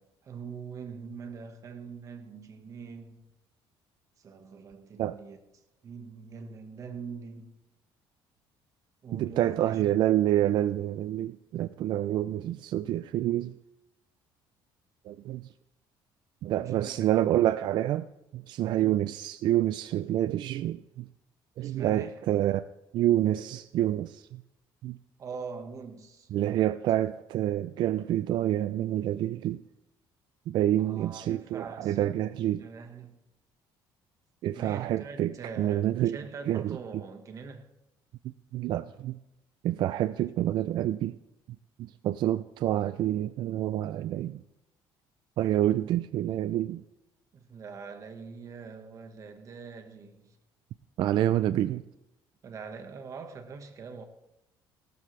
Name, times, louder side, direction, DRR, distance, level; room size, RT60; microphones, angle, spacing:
voice 1, 0.0-3.3 4.2-5.4 5.8-7.5 9.0-9.8 16.6-17.4 21.6-22.2 25.2-26.3 30.8-33.2 34.5-37.7 47.3-50.4 52.4-54.0, right 5 dB, 40° right, 1.4 m, -43 dB
voice 2, 9.1-13.6 15.1-15.5 16.4-18.1 18.3-21.1 21.6-22.6 22.9-24.4 24.8-25.0 26.3-29.6 30.5-32.6 34.4-36.2 36.5-36.8 38.2-39.2 39.6-41.2 41.8-44.4 45.4-46.8 51.0-51.8, right 13 dB, 60° right, 0.4 m, -28 dB
17.5 x 13.0 x 3.3 m
cardioid pair, 135°, 9 cm